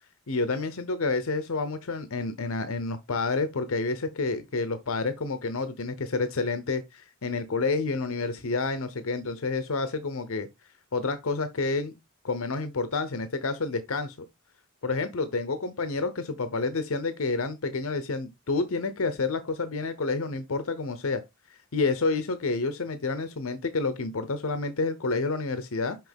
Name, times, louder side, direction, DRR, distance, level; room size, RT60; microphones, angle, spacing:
voice 1, 0.3-10.5 10.9-11.9 12.2-14.1 14.8-21.2 21.7-26.0, left 3 dB, 80° left, 0.8 m, -29 dB
5.9 x 5.4 x 3.5 m
head